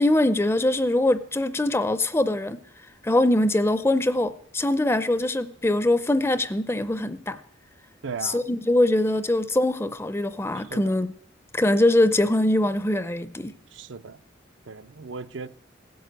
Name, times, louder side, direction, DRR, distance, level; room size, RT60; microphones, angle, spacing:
voice 1, 0.0-2.6 3.0-7.4 8.2-11.1 11.5-13.5, left 1 dB, 15° left, 0.5 m, -22 dB
voice 2, 8.0-8.4 10.7-10.8 13.7-14.2 14.7-15.5, right 5 dB, 70° right, 0.5 m, -36 dB
16.0 x 7.8 x 8.1 m
head